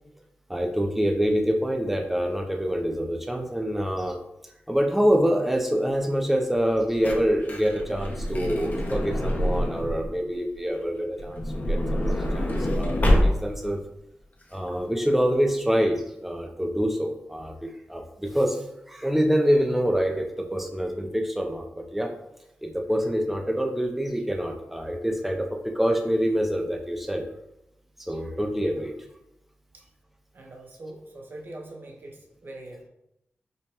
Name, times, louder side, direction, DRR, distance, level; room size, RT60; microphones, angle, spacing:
voice 1, 0.5-4.2 4.7-13.8 14.5-22.1 22.6-27.2 28.0-28.9, equal, 5° right, 2 dB, 0.5 m, -26 dB
Truck / Door, 6.9-10.1 11.2-13.7 14.4-14.5 14.7-14.9, equal, 40° left, 0.7 m, -26 dB
voice 2, 30.3-32.9, right 1 dB, 50° right, 0 dB, 0.6 m, -43 dB
5.1 x 2.1 x 2.9 m, 0.85 s
wide cardioid pair, 70°, 4 cm